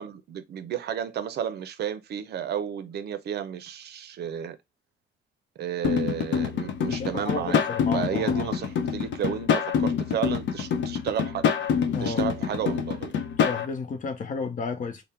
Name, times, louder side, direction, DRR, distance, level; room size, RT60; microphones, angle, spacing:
voice 1, 0.0-4.6 5.6-7.6 7.9-11.5 12.0-13.1, right 9 dB, 60° right, 0.5 m, -32 dB
sound 1, 5.8-13.7, left 7 dB, 75° left, 0.7 m, -26 dB
voice 2, 6.9-8.5 11.9-12.2 13.4-15.0, left 4 dB, 45° left, 0.7 m, -32 dB
3.5 x 2.1 x 4.2 m
cardioid pair, 145°, 19 cm